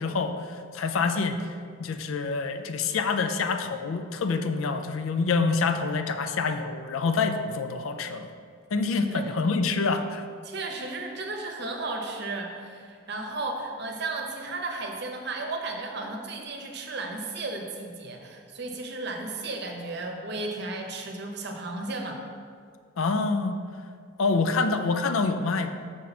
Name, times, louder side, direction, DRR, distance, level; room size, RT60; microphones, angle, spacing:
voice 1, 0.0-1.5 1.8-8.3 8.7-10.3 23.0-23.6 24.2-25.7, left 4 dB, 75° left, 8 dB, 0.5 m, -26 dB
voice 2, 10.4-22.2, right 2 dB, 50° right, 3 dB, 0.8 m, -34 dB
6.3 x 5.6 x 4.1 m, 2.1 s
head